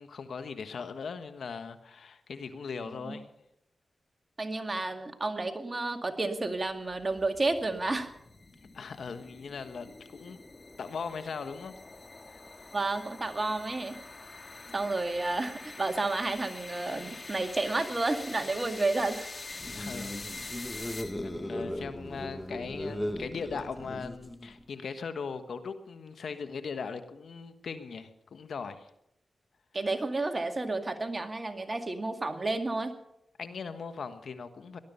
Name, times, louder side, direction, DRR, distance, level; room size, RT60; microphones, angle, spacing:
voice 1, 0.0-3.2 8.7-10.4 10.8-11.7 12.3-12.4 14.6-14.8 19.7-20.8 21.2-28.9 33.4-34.8, left 5 dB, 75° left, 10 dB, 1.3 m, -39 dB
voice 2, 4.4-8.1 12.7-14.0 14.7-19.3 29.7-32.9, right 2 dB, 40° right, 6 dB, 2.2 m, -31 dB
sound 1, 6.7-21.5, left 3 dB, 40° left, 2.4 m, -45 dB
sound 2, 19.5-24.6, left 1 dB, 10° left, 1.6 m, -37 dB
18.5 x 12.0 x 5.6 m, 0.81 s
cardioid pair, 40°, 0 cm